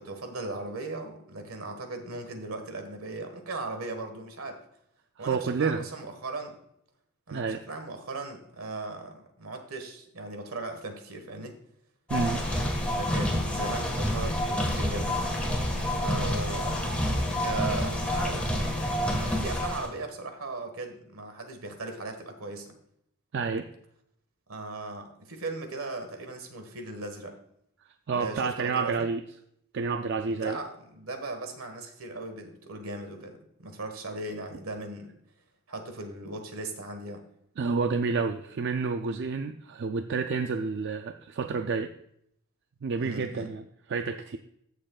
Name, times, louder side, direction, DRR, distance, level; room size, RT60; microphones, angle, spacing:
voice 1, 0.0-4.6 5.2-6.6 7.3-11.5 13.0-15.3 16.0-16.8 17.4-18.5 18.9-22.7 24.5-27.4 28.1-28.9 30.3-35.1 35.7-37.2 43.0-43.5, right 2 dB, 75° right, 6 dB, 1.6 m, -38 dB
voice 2, 5.2-5.9 7.3-7.6 12.1-12.4 23.3-23.7 28.1-29.2 29.7-30.6 37.6-41.9 42.8-44.4, right 4 dB, 55° right, 7 dB, 0.4 m, -29 dB
sound 1, 12.1-19.9, left 1 dB, 5° left, 1.6 m, -28 dB
15.0 x 6.6 x 2.4 m, 0.73 s
head